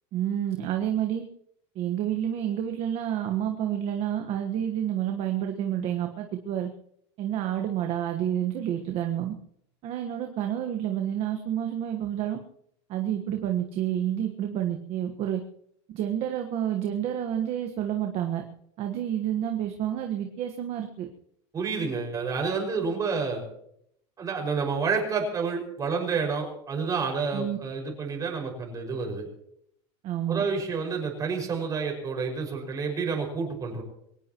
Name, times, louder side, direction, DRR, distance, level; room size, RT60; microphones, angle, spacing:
voice 1, 0.1-1.2 1.7-6.7 7.2-9.3 9.8-12.4 12.9-15.4 15.9-18.4 18.8-21.1 27.3-27.6 30.0-30.4, right 10 dB, 40° right, 4 dB, 1.4 m, -29 dB
voice 2, 21.5-23.4 24.2-29.3 30.3-33.8, right 5 dB, 25° right, 1 dB, 5.8 m, -29 dB
23.0 x 18.0 x 3.0 m, 0.71 s
supercardioid pair, 145°, 15 cm